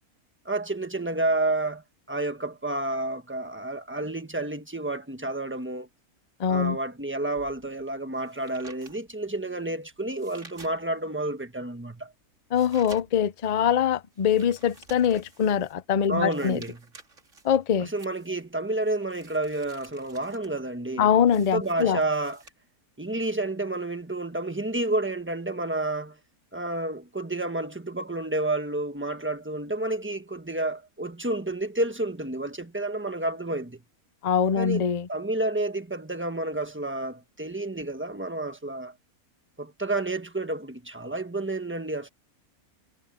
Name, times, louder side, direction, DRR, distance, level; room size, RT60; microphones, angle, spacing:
voice 1, 0.4-1.8 2.1-5.9 6.5-12.1 16.1-16.8 17.8-21.1 21.5-22.4 23.0-26.2 26.5-33.8 34.5-34.8 35.1-38.9 39.6-42.1, right 2 dB, 10° right, 1.3 m, -30 dB
voice 2, 6.4-6.8 12.5-16.6 17.4-17.9 21.0-22.0 34.2-35.1, left 8 dB, 80° left, 0.3 m, -23 dB
sound 1, 7.3-11.2 11.6-22.5, right 3 dB, 55° right, 2.7 m, -52 dB
omnidirectional pair, 1.5 m